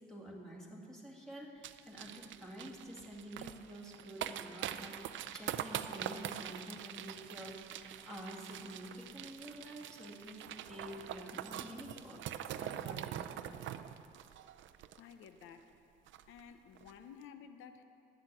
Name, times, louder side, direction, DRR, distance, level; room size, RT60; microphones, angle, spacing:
voice 1, 0.1-12.2 12.6-13.3, equal, 5° left, -4 dB, 2.4 m, -49 dB
sound 1, 1.6-15.4 15.7-15.8 16.1-16.4 16.8-16.9, right 11 dB, 70° right, 0.5 m, -44 dB
voice 2, 15.0-15.8 16.3-17.8, left 7 dB, 90° left, 9 dB, 0.7 m, -53 dB
11.0 x 8.1 x 7.7 m, 2.7 s
cardioid pair, 90°, 20 cm